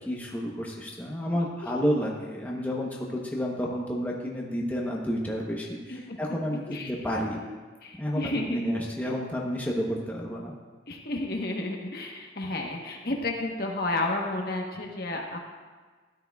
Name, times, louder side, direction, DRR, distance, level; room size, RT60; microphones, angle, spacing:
voice 1, 0.0-7.4 7.9-10.5, equal, 10° left, -2 dB, 0.9 m, -30 dB
voice 2, 7.8-8.8 10.9-15.4, left 2 dB, 55° left, 1 dB, 1.1 m, -31 dB
13.0 x 10.5 x 2.3 m, 1.4 s
head